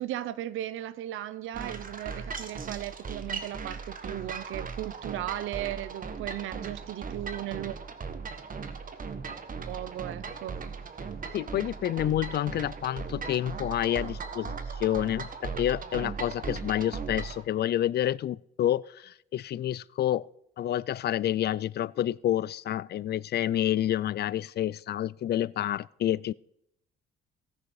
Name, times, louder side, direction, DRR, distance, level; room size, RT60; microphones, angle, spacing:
voice 1, 0.0-7.8 9.7-10.6, right 13 dB, 85° right, 0.7 m, -36 dB
sound 1, 1.5-17.4, right 5 dB, 45° right, 1.5 m, -38 dB
voice 2, 11.3-20.3 20.6-26.3, left 12 dB, 55° left, 0.4 m, -29 dB
17.5 x 6.6 x 4.8 m
cardioid pair, 90°, 20 cm